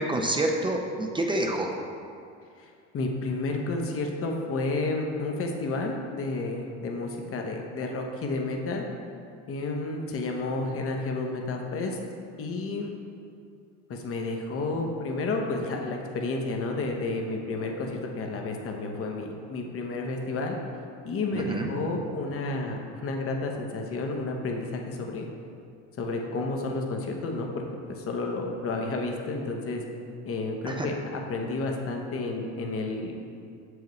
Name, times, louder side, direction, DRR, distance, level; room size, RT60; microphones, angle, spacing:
voice 1, 0.0-1.7 21.3-21.8 30.6-30.9, right 1 dB, 15° right, 1 dB, 0.6 m, -28 dB
voice 2, 2.6-8.9 9.5-12.0 12.4-12.9 13.9-20.6 21.0-25.3 26.0-29.8 30.2-33.1, left 3 dB, 40° left, 2 dB, 0.9 m, -31 dB
6.6 x 4.9 x 3.1 m, 2.4 s
supercardioid pair, 85°, 35 cm